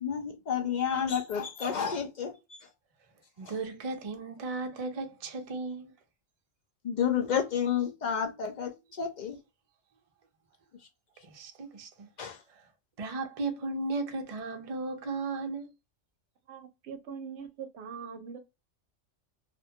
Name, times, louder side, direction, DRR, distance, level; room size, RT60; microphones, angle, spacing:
voice 1, 0.0-2.7 3.5-3.6 6.8-9.4 12.2-12.4, left 7 dB, 70° left, 0.4 m, -31 dB
voice 2, 3.4-5.9 11.2-12.1 12.5-12.7 13.0-15.7, right 3 dB, 50° right, 0.4 m, -35 dB
voice 3, 16.5-18.4, right 6 dB, 65° right, 0.8 m, -42 dB
2.5 x 2.1 x 2.6 m
omnidirectional pair, 1.3 m